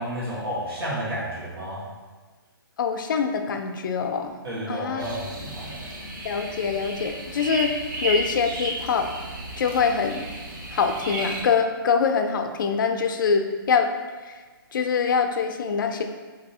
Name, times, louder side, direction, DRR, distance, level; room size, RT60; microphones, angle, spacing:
voice 1, 0.0-1.9 4.4-5.9, equal, 85° right, -8 dB, 1.2 m, -31 dB
voice 2, 2.8-4.3 4.7-5.0 6.2-7.7 8.0-9.1 9.6-10.3 10.7-13.9 14.2-14.4 14.7-16.0, left 6 dB, 60° left, 6 dB, 0.4 m, -24 dB
sound 1, 5.0-11.4, right 1 dB, 60° right, 0.8 m, -33 dB
3.2 x 2.7 x 2.7 m, 1.3 s
hypercardioid pair, 160°, 12 cm